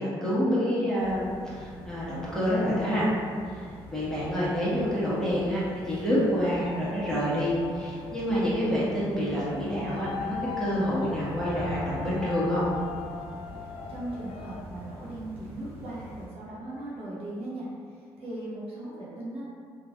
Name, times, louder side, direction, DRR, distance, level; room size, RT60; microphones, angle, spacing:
voice 1, 0.0-3.1 3.5-3.7 3.9-12.6, equal, 5° left, -9 dB, 1.3 m, -27 dB
sound 1, 1.0-16.3, equal, 85° right, 1.5 m, -44 dB
sound 2, 6.1-14.6, left 6 dB, 55° left, 0.4 m, -40 dB
voice 2, 13.6-19.4, right 1 dB, 60° right, -8 dB, 1.0 m, -38 dB
3.2 x 2.5 x 2.4 m, 2.1 s
supercardioid pair, 60°, 11 cm